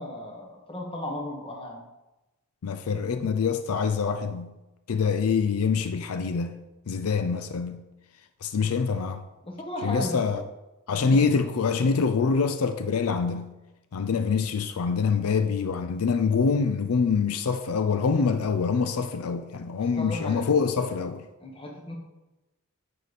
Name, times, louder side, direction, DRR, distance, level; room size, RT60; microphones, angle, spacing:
voice 1, 0.0-1.8 9.4-10.3 10.9-11.2 20.0-20.5 21.4-22.0, left 1 dB, 25° left, 1.2 m, -35 dB
voice 2, 2.6-4.5 4.9-6.6 6.9-7.8 8.4-9.2 9.8-10.4 10.9-13.5 13.9-21.2, left 5 dB, 80° left, 0.5 m, -25 dB
9.2 x 5.0 x 4.1 m
head